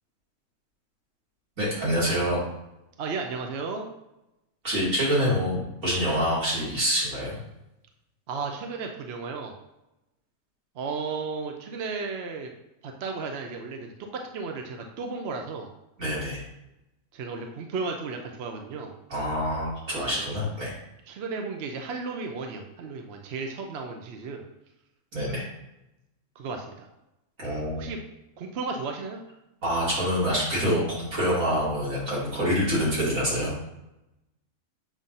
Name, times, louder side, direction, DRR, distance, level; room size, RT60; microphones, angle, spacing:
voice 1, 1.6-2.4 4.6-7.4 16.0-16.4 19.1-20.7 25.1-25.5 27.4-27.9 29.6-33.5, equal, 80° right, -7 dB, 2.9 m, -26 dB
voice 2, 3.0-3.9 8.3-9.6 10.8-12.5 12.8-15.7 17.1-18.9 20.0-20.3 21.1-24.4 26.4-26.9 27.7-28.0 28.4-29.2, right 4 dB, 60° right, 3 dB, 0.8 m, -34 dB
7.1 x 2.6 x 5.5 m, 0.92 s
omnidirectional pair, 1.4 m